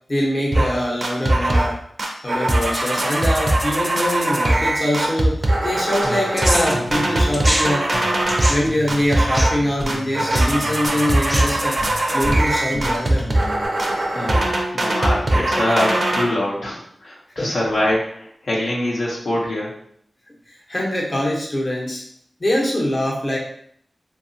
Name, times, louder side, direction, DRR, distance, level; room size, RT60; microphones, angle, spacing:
voice 1, 0.1-1.8 2.2-8.0 8.5-11.8 12.1-13.2 17.4-17.5 20.5-22.0 22.4-23.4, left 1 dB, 40° left, -3 dB, 0.8 m, -23 dB
sound 1, 0.5-0.7 1.0-1.7 2.0-8.6 8.9-9.6 9.9-16.3, right 1 dB, 55° right, 0.5 m, -20 dB
sound 2, 6.0-7.6 7.9-13.7, equal, 5° left, 0.6 m, -28 dB
voice 2, 14.1-19.7, left 1 dB, 70° left, -5 dB, 0.7 m, -24 dB
2.8 x 2.3 x 2.6 m, 0.66 s
wide cardioid pair, 65°, 0 cm